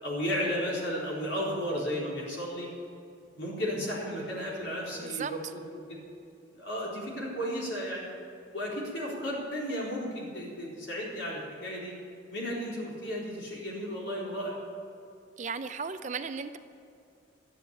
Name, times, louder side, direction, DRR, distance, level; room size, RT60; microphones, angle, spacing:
voice 1, 0.0-2.7 3.4-5.6 5.9-6.0 6.5-8.1 8.5-11.9 12.3-14.6, equal, 70° left, -4 dB, 4.1 m, -34 dB
voice 2, 15.4-16.6, right 5 dB, 40° right, 10 dB, 0.5 m, -35 dB
12.5 x 9.4 x 8.4 m, 2.5 s
head